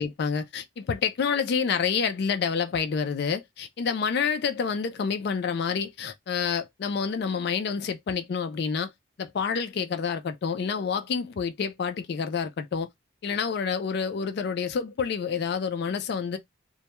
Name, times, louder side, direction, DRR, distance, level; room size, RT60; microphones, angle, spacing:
voice 1, 0.0-8.9 9.2-12.9 13.2-16.4, left 6 dB, 55° left, 0.3 m, -28 dB
2.2 x 2.2 x 2.8 m
head